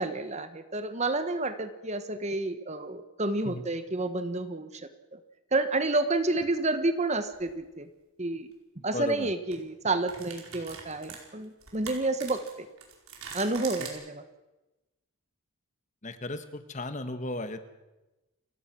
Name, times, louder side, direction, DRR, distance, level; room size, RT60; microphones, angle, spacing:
voice 1, 0.0-5.2 5.5-7.9 8.2-8.5 8.8-12.7 13.3-14.2, right 2 dB, 30° right, 10 dB, 1.2 m, -30 dB
sound 1, 7.3-7.5 9.0-9.2 9.5-9.6 10.1-13.9, right 6 dB, 70° right, 4.7 m, -43 dB
voice 2, 8.9-9.3 13.8-13.9 16.0-17.6, left 1 dB, 35° left, 10 dB, 1.5 m, -35 dB
29.0 x 16.0 x 6.2 m, 1.0 s
head